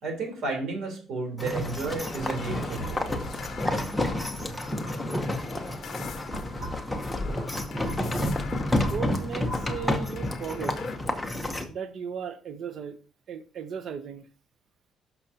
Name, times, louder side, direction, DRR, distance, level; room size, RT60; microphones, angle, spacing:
voice 1, 0.0-3.0, right 3 dB, 65° right, 3.5 m, -32 dB
sound 1, 1.4-11.7, left 1 dB, 5° left, 0.8 m, -30 dB
sound 2, 1.8-5.4 5.9-9.9, equal, 20° right, 3.6 m, -40 dB
sound 3, 1.9-11.0, left 6 dB, 40° left, 1.0 m, -45 dB
voice 2, 8.7-10.8 11.7-13.0 13.3-14.3, right 7 dB, 45° right, 0.7 m, -36 dB
12.5 x 5.8 x 2.8 m
cardioid pair, 175°, 0 cm